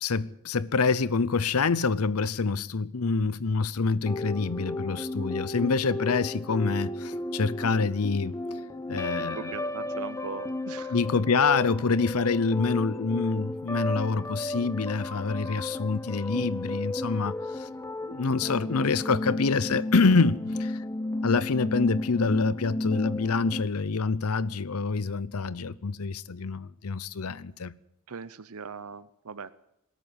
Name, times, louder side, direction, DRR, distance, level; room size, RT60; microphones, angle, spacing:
voice 1, 0.0-8.4 8.9-9.5 10.9-17.7 18.0-20.8 21.2-27.7, left 4 dB, 85° left, 0.8 m, -26 dB
sound 1, 4.0-23.6, left 2 dB, 15° left, 0.9 m, -33 dB
voice 2, 9.3-11.0 28.1-29.5, right 5 dB, 80° right, 0.8 m, -40 dB
21.5 x 13.5 x 9.7 m
head